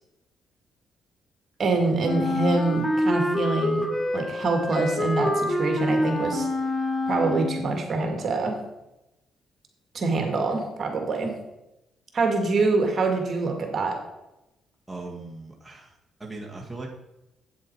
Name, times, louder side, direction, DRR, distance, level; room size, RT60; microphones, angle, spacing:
voice 1, 1.6-3.9 4.1-6.5 7.1-8.6 9.9-11.3 12.1-14.0, right 3 dB, 50° right, 3 dB, 1.9 m, -25 dB
Wind instrument woodwind instrument, 2.0-7.8, left 1 dB, 20° left, 1.2 m, -26 dB
voice 2, 14.9-15.8 16.2-16.9, right 2 dB, 10° right, -2 dB, 1.7 m, -38 dB
8.5 x 7.4 x 4.6 m, 0.92 s
cardioid pair, 90°, 0 cm